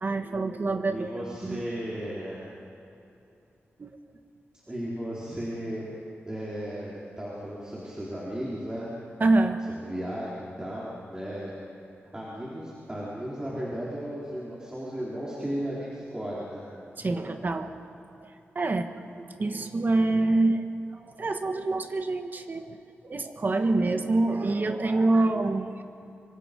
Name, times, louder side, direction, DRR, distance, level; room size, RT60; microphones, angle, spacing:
voice 1, 0.0-1.1 1.4-1.7 3.8-3.9 9.2-9.6 17.0-17.8 18.2-18.3 18.5-20.7 20.9-22.8 23.0-25.8, right 2 dB, 45° right, 7 dB, 1.4 m, -26 dB
voice 2, 0.9-2.5 4.7-5.8 6.3-8.9 9.7-11.5 12.1-16.7, equal, 15° right, -7 dB, 3.9 m, -35 dB
25.0 x 24.0 x 5.3 m, 2.7 s
wide cardioid pair, 110°, 5 cm